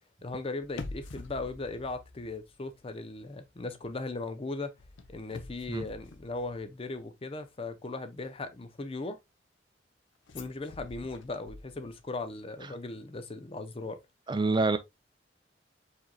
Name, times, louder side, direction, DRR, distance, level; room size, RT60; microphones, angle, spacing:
voice 1, 0.2-4.7 5.1-9.2 10.3-14.0, left 3 dB, 30° left, 0.6 m, -38 dB
sound 1, 0.6-2.9 3.2-3.5 4.8-7.0 10.3-12.2 12.4-12.5, left 3 dB, 80° left, 0.7 m, -46 dB
voice 2, 14.3-14.8, right 3 dB, 25° right, 0.5 m, -26 dB
4.9 x 4.4 x 2.3 m
head